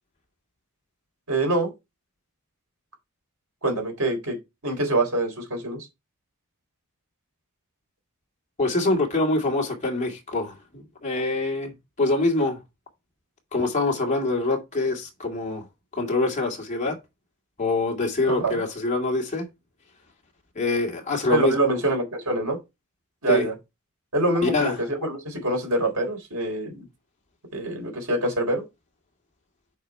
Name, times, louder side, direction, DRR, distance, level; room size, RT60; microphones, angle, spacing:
voice 1, 1.3-1.7 3.6-4.4 4.6-5.9 18.2-18.6 21.3-22.6 23.2-23.5 24.1-26.9 27.5-28.6, right 2 dB, 80° right, 3.6 m, -25 dB
voice 2, 8.6-11.7 12.0-12.6 13.5-15.6 15.9-17.0 17.6-19.5 20.5-21.6 23.3-23.5 24.4-24.8, left 2 dB, 30° left, 2.2 m, -25 dB
6.5 x 4.9 x 4.5 m
head